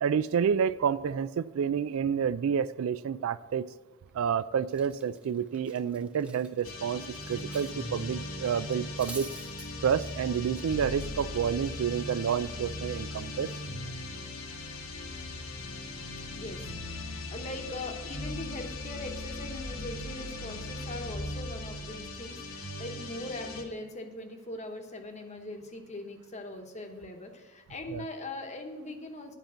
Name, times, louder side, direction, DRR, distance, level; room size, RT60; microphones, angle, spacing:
voice 1, 0.0-3.7 4.1-9.3 9.8-13.5 27.9-28.0, right 7 dB, 70° right, 16 dB, 0.3 m, -29 dB
Cutlery silverware, 4.1-4.3 4.7-7.8 8.1-8.3 8.7-9.7, right 2 dB, 5° right, 0.7 m, -47 dB
sound 1, 6.6-23.6, left 2 dB, 70° left, 1.1 m, -39 dB
voice 2, 16.3-29.4, left 2 dB, 30° left, 5 dB, 1.0 m, -41 dB
10.0 x 5.2 x 7.3 m, 1.3 s
head